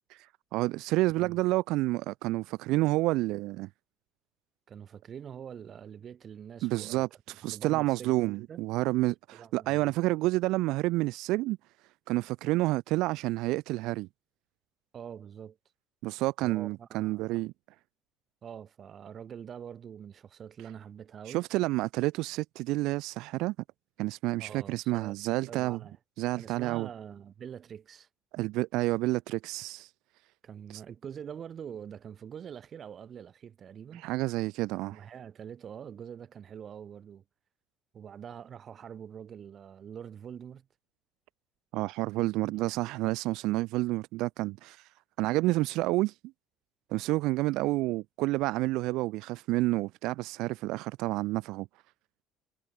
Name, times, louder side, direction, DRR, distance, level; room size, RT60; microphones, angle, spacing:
voice 1, 0.5-3.7 6.6-11.6 12.1-14.1 16.0-17.5 21.3-23.5 24.0-25.8 26.2-26.9 28.3-29.9 33.9-35.0 41.7-44.9 45.2-46.1 46.9-51.7, right 19 dB, 75° right, 0.7 m, -29 dB
voice 2, 4.7-7.0 7.5-8.1 8.5-8.6 9.3-9.9 14.9-15.6 16.4-17.4 18.4-21.4 24.4-25.2 25.5-26.0 26.4-28.1 30.4-34.0 34.9-37.2 37.9-40.7 42.1-42.2 42.6-42.9, right 8 dB, 35° right, 1.7 m, -45 dB
cardioid pair, 145°, 0 cm